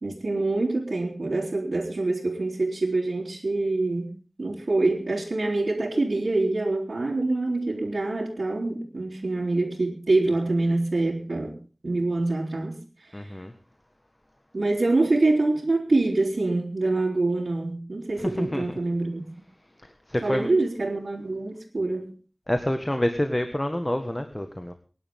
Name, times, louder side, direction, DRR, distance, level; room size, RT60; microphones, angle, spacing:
voice 1, 0.0-4.1 4.4-11.6 11.8-13.2 14.5-19.3 20.2-22.1, right 2 dB, 90° right, -5 dB, 3.5 m, -25 dB
voice 2, 13.1-13.5 18.4-18.6 20.1-20.5 22.5-24.7, left 1 dB, 20° left, 7 dB, 1.7 m, -27 dB
24.5 x 11.0 x 3.8 m, 0.38 s
wide cardioid pair, 60°, 0 cm